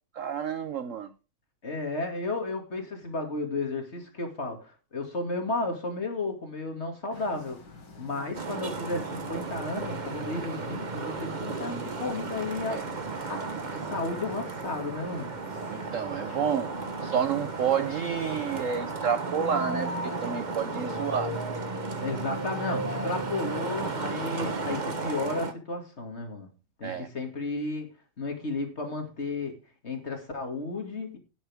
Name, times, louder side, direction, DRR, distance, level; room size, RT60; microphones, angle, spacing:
voice 1, 0.1-1.1 8.2-8.3 12.7-12.8 15.7-16.7 17.0-21.3 26.8-27.1, right 8 dB, 85° right, 0.6 m, -30 dB
voice 2, 1.6-7.6 8.0-15.4 22.0-26.5 26.8-27.9 28.2-29.6 29.8-31.2, left 3 dB, 30° left, 2.5 m, -33 dB
sound 1, 7.1-18.9, left 3 dB, 75° left, 3.3 m, -49 dB
Traffic noise roadway noise, 8.3-25.5, right 4 dB, 30° right, 0.9 m, -35 dB
sound 2, 19.0-24.5, equal, 10° right, 2.7 m, -37 dB
18.0 x 7.3 x 3.5 m
omnidirectional pair, 2.2 m